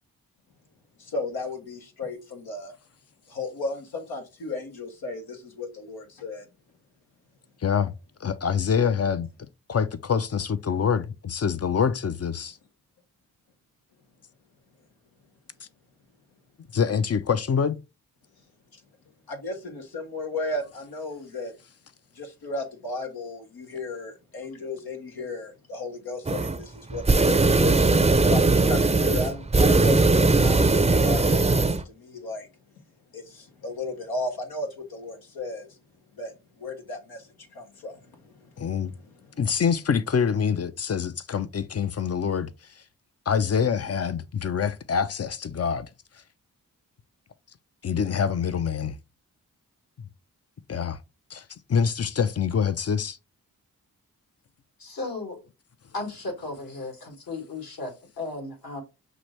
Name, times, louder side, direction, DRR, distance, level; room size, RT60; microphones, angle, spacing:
voice 1, 1.0-2.7 3.3-6.5 19.3-21.5 22.1-32.5 33.1-35.8 36.1-38.7 39.0-39.3, left 2 dB, 85° left, 1.2 m, -35 dB
voice 2, 7.6-9.3 9.7-12.6 16.7-17.8 38.6-38.9 39.4-42.5 43.3-45.9 47.8-49.0 50.7-51.0 51.3-51.4 51.7-53.2, left 6 dB, 45° left, 0.6 m, -25 dB
sound 1, 26.2-26.6 26.9-31.8, right 3 dB, 15° right, 0.6 m, -20 dB
voice 3, 54.8-55.4 55.9-58.8, left 2 dB, 70° left, 2.1 m, -35 dB
5.9 x 2.5 x 3.1 m
cardioid pair, 40°, 36 cm